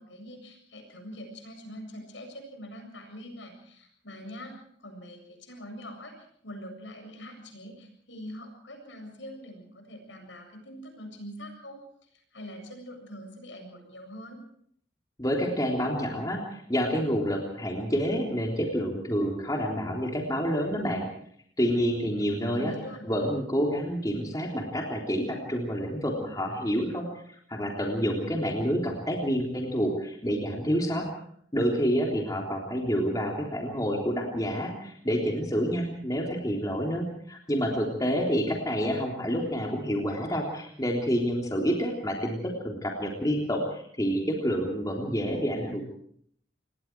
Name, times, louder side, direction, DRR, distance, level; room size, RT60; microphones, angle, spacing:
voice 1, 0.0-4.5 4.8-11.8 12.1-14.4 22.2-23.1, equal, 75° left, 4 dB, 7.7 m, -43 dB
voice 2, 15.2-21.1 21.6-22.7 23.1-31.1 31.5-45.8, equal, 20° left, 0 dB, 3.5 m, -28 dB
27.5 x 21.5 x 4.7 m, 0.64 s
head